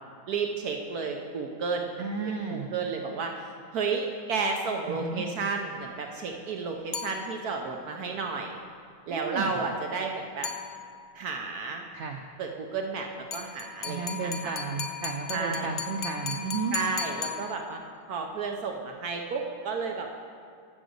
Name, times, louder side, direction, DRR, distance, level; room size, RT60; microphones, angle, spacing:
voice 1, 0.3-2.0 2.5-8.6 9.1-10.5 11.1-11.8 12.4-14.5 15.3-15.7 16.7-17.8 18.1-20.1, right 4 dB, 65° right, 3 dB, 1.1 m, -32 dB
voice 2, 2.0-2.7 4.9-5.2 9.1-9.6 11.9-12.2 13.9-16.8, right 5 dB, 85° right, 4 dB, 0.6 m, -33 dB
sound 1, 6.9-7.7 10.4-11.2 13.3-18.0, left 6 dB, 60° left, 0.8 m, -37 dB
11.5 x 5.1 x 6.5 m, 2.3 s
omnidirectional pair, 1.9 m